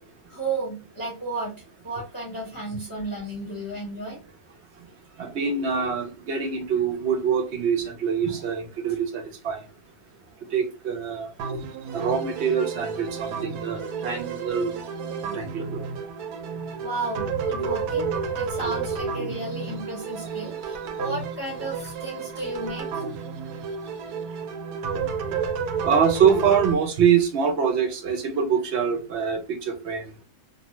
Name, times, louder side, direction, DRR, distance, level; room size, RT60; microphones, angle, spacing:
voice 1, 0.3-1.6 1.8-4.2 16.8-23.1, right 2 dB, 20° left, 0.7 m, -33 dB
voice 2, 5.2-9.6 10.5-11.3 11.9-14.7 15.3-15.8 25.8-30.0, right 7 dB, 65° right, 0.7 m, -24 dB
sound 1, 11.4-26.8, right 5 dB, 80° right, 1.1 m, -31 dB
2.6 x 2.2 x 2.9 m
omnidirectional pair, 1.6 m